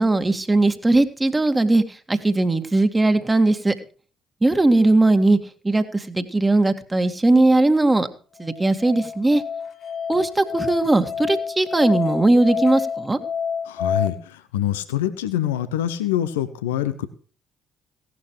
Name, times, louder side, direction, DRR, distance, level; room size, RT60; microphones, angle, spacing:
voice 1, 0.0-3.7 4.4-5.4 5.6-8.1 8.4-9.4 10.1-13.2, right 2 dB, 20° right, 8 dB, 2.0 m, -19 dB
Musical instrument, 8.4-14.1, left 6 dB, 55° left, 2.8 m, -28 dB
voice 2, 13.6-17.1, left 11 dB, 80° left, 12 dB, 0.9 m, -25 dB
17.5 x 12.0 x 3.2 m, 0.40 s
figure-of-eight pair, 50°, 0 cm